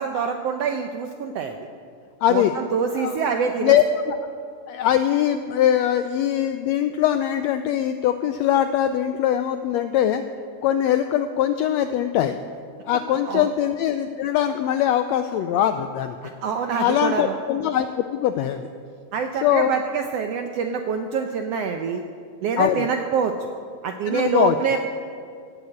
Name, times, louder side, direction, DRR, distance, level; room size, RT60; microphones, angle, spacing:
voice 1, 0.0-1.6 2.3-3.8 13.3-13.5 16.4-17.3 19.1-22.0 22.4-23.5 23.8-24.8, right 6 dB, 80° right, 6 dB, 1.4 m, -25 dB
voice 2, 2.2-2.5 3.0-3.3 3.6-4.2 4.7-10.2 10.6-12.3 12.8-16.3 16.8-18.7 19.4-19.7 22.6-22.9 24.1-24.6, left 10 dB, 85° left, 9 dB, 1.5 m, -22 dB
16.5 x 8.1 x 8.6 m, 2.2 s
omnidirectional pair, 3.6 m